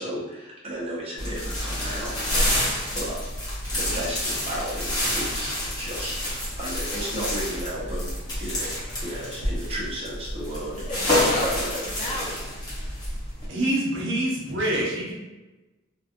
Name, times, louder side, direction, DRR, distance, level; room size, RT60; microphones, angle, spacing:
voice 1, 0.0-3.2 3.7-6.2 6.6-8.1 8.4-8.7 9.0-10.8 11.1-11.7, right 1 dB, 30° right, -6 dB, 0.9 m, -34 dB
sound 1, 1.2-13.5, left 1 dB, 20° left, 0.9 m, -28 dB
voice 2, 10.7-12.5, left 2 dB, 35° left, -2 dB, 0.4 m, -33 dB
voice 3, 13.5-15.1, right 1 dB, 60° right, -4 dB, 0.8 m, -25 dB
3.1 x 2.5 x 2.4 m, 1.1 s
head